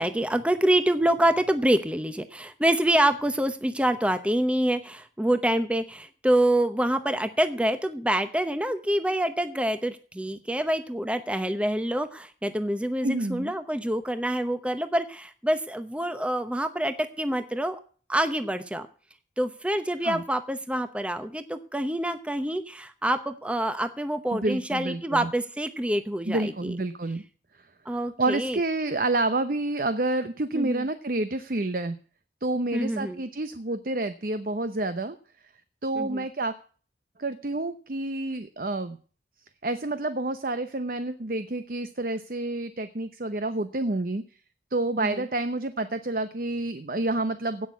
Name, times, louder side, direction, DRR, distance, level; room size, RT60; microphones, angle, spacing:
voice 1, 0.0-17.8 18.1-18.9 19.4-26.8 27.9-28.6 30.5-30.9 32.7-33.2 36.0-36.2 45.0-45.2, right 1 dB, 5° right, 9 dB, 0.9 m, -26 dB
voice 2, 13.0-13.5 20.0-20.2 24.3-25.3 26.3-27.2 28.2-32.0 32.4-35.2 35.8-36.5 37.2-39.0 39.6-44.2 44.7-47.7, right 2 dB, 50° right, 10 dB, 0.8 m, -29 dB
17.0 x 6.3 x 8.4 m, 0.41 s
head